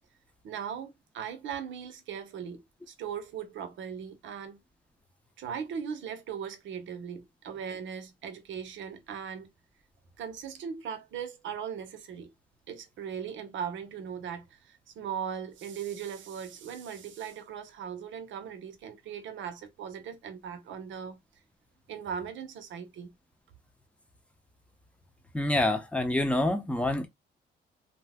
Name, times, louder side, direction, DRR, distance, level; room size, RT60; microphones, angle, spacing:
voice 1, 0.4-4.6 5.4-9.5 10.2-12.3 12.7-21.2 21.9-23.1, right 7 dB, 70° right, 0.8 m, -39 dB
voice 2, 25.3-27.1, left 1 dB, 5° left, 0.7 m, -27 dB
2.7 x 2.1 x 3.5 m
cardioid pair, 90°, 20 cm